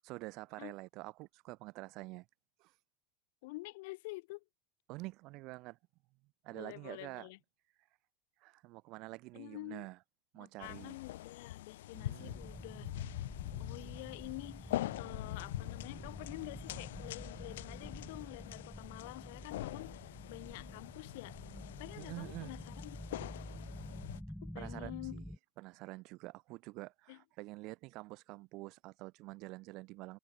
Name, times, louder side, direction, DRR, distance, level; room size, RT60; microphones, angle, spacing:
voice 1, 0.0-2.3 2.6-2.7 4.9-5.8 6.4-7.3 8.4-10.0 10.3-11.0 11.9-12.4 22.0-22.6 24.6-25.2 25.6-30.2, right 22 dB, 40° right, 3.2 m, -47 dB
voice 2, 3.4-4.4 6.5-7.4 9.3-9.9 10.4-12.9 13.6-21.4 21.8-23.3 24.4-25.2 27.1-27.2, left 23 dB, 55° left, 2.8 m, -48 dB
sound 1, 10.6-24.2, left 15 dB, 85° left, 0.9 m, -44 dB
sound 2, 12.2-25.4, equal, ahead, 3.5 m, -49 dB
supercardioid pair, 175°, 0 cm